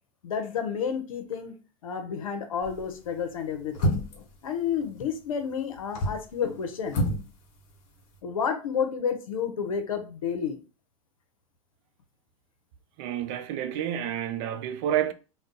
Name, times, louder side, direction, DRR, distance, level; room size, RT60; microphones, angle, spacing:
voice 1, 0.2-1.5 1.8-7.0 8.2-10.6, left 7 dB, 85° left, 0.7 m, -31 dB
sound 1, 2.6-2.9 3.7-4.3 5.8-6.3 6.9-7.3 7.5-7.6, equal, 50° left, 1.1 m, -27 dB
voice 2, 13.0-15.1, right 10 dB, 55° right, 0.4 m, -29 dB
2.3 x 2.1 x 3.8 m
hypercardioid pair, 100°, 17 cm